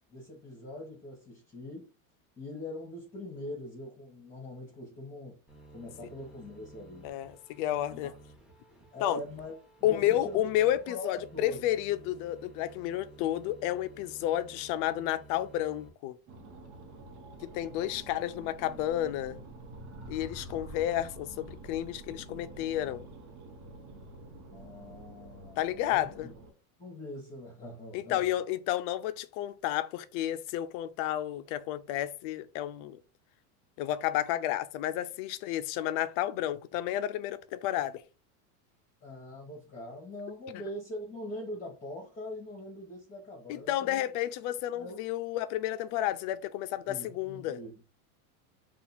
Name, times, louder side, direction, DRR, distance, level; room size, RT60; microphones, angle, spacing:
voice 1, 0.1-1.9 2.4-5.4 5.7-7.1 7.9-8.1 8.9-10.5 10.9-11.6 24.5-26.3 26.8-28.3 39.0-44.0 44.7-45.0 46.9-47.7, left 1 dB, 15° left, 1.1 m, -42 dB
sound 1, 5.5-15.9, right 2 dB, ahead, 1.1 m, -54 dB
voice 2, 7.0-8.1 9.0-9.2 9.8-16.2 17.4-19.4 20.1-23.0 25.6-26.3 27.9-33.0 33.8-38.0 43.5-47.6, left 13 dB, 45° left, 0.4 m, -31 dB
sound 2, 16.3-26.5, right 2 dB, 55° right, 1.0 m, -48 dB
2.8 x 2.4 x 4.0 m
supercardioid pair, 120°, 44 cm